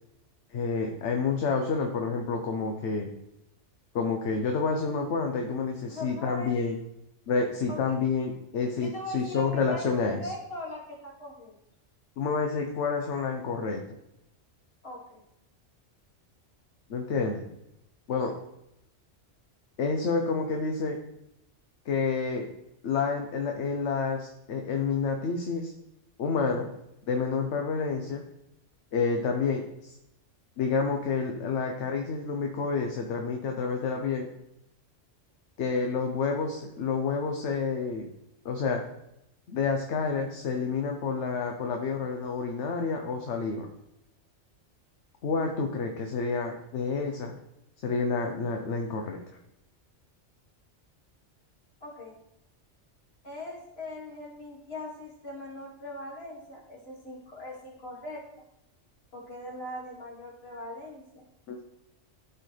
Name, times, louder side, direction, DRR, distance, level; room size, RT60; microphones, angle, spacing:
voice 1, 0.5-3.1 3.9-6.8 7.3-10.3 12.2-13.8 16.9-17.4 18.1-18.3 19.8-21.0 21.9-22.5 22.8-25.7 26.2-26.7 27.1-28.2 28.9-30.0 30.6-34.3 35.6-38.1 38.4-38.8 39.5-43.7 45.2-47.3 47.8-49.2 61.5-61.6, left 4 dB, 70° left, 3 dB, 1.1 m, -29 dB
voice 2, 5.9-6.5 7.7-8.0 8.8-11.5 14.8-15.2 51.8-52.2 53.2-58.2 59.1-61.2, left 1 dB, 55° left, -3 dB, 2.4 m, -40 dB
12.5 x 4.6 x 3.2 m, 0.83 s
omnidirectional pair, 1.3 m